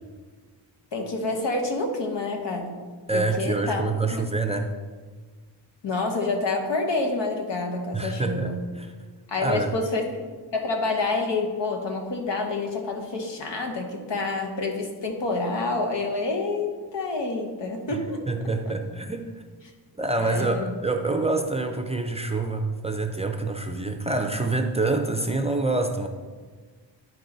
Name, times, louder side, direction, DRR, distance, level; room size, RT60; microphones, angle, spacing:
voice 1, 0.9-2.8 3.1-3.8 5.8-8.6 9.3-10.2 10.5-18.2 20.2-20.7, left 3 dB, 75° left, 3 dB, 1.3 m, -28 dB
voice 2, 3.1-4.7 7.9-8.9 9.4-9.7 17.9-18.0 18.3-19.3 20.0-26.1, right 3 dB, 15° right, 5 dB, 0.5 m, -26 dB
12.0 x 4.7 x 3.9 m, 1.5 s
wide cardioid pair, 120°, 43 cm